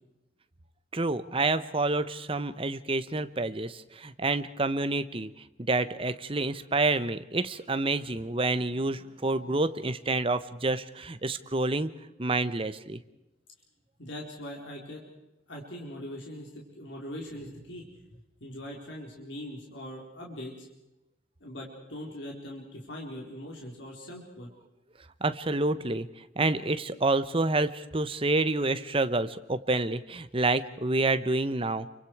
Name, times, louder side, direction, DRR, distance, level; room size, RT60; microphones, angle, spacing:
voice 1, 0.9-5.3 5.7-11.9 12.2-13.0 25.2-26.1 26.4-31.9, right 2 dB, 30° right, 12 dB, 0.9 m, -28 dB
voice 2, 14.0-15.0 15.5-17.9 18.1-20.7 21.4-24.5, left 1 dB, 65° left, -2 dB, 4.4 m, -41 dB
29.5 x 24.5 x 4.8 m, 0.94 s
head